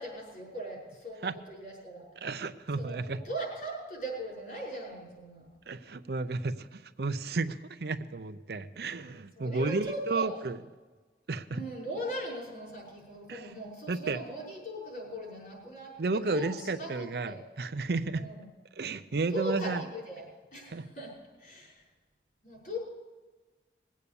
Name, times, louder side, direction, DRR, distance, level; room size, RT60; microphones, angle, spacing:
voice 1, 0.0-2.0 2.8-5.5 9.4-10.3 11.5-17.4 18.1-18.5 19.3-20.2 20.5-21.1 21.4-21.8 22.4-22.8, equal, 50° left, -3 dB, 5.8 m, -39 dB
voice 2, 2.2-3.2 5.7-10.6 11.3-11.7 13.3-13.5 13.9-14.2 16.0-18.3 18.8-19.8 20.7-20.8, right 3 dB, 60° right, 11 dB, 0.6 m, -32 dB
20.0 x 8.4 x 6.9 m, 1.3 s
head